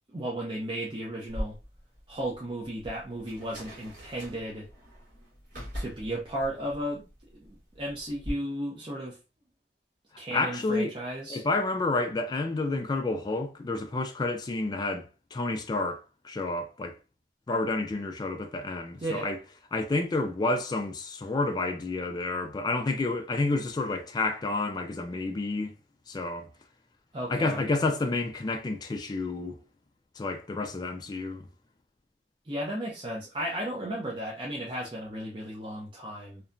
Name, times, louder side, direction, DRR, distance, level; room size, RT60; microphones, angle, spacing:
voice 1, 0.1-1.6 2.1-4.7 5.7-7.1 7.4-9.2 10.2-11.4 19.0-19.3 27.1-27.6 32.4-36.4, right 1 dB, 30° right, 0.5 m, -34 dB
sound 1, 1.3-8.3, equal, 45° right, 1.3 m, -41 dB
voice 2, 10.3-10.9 11.3-17.0 17.5-19.4 19.7-25.7 26.1-26.5 27.3-29.6 30.2-31.5, left 2 dB, 25° left, 0.3 m, -30 dB
2.7 x 2.2 x 2.5 m
head